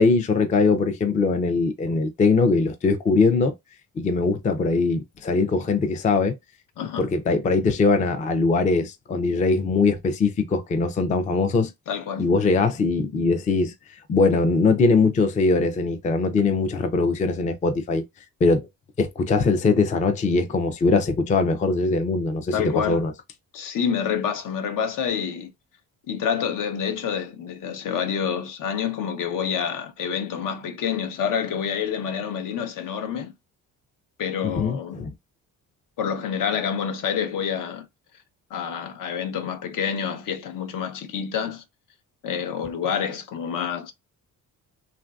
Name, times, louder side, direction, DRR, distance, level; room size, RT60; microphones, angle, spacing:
voice 1, 0.0-3.5 4.0-6.4 7.0-11.7 12.2-13.7 14.1-18.0 18.4-18.7 19.0-23.1 34.4-35.1, left 4 dB, 25° left, 0.4 m, -21 dB
voice 2, 6.8-7.1 11.9-12.2 22.5-23.0 23.5-25.5 26.1-33.3 34.2-35.0 36.0-37.9 38.5-41.6 42.2-43.9, left 7 dB, 70° left, 0.7 m, -28 dB
3.2 x 2.5 x 2.3 m
cardioid pair, 140°, 34 cm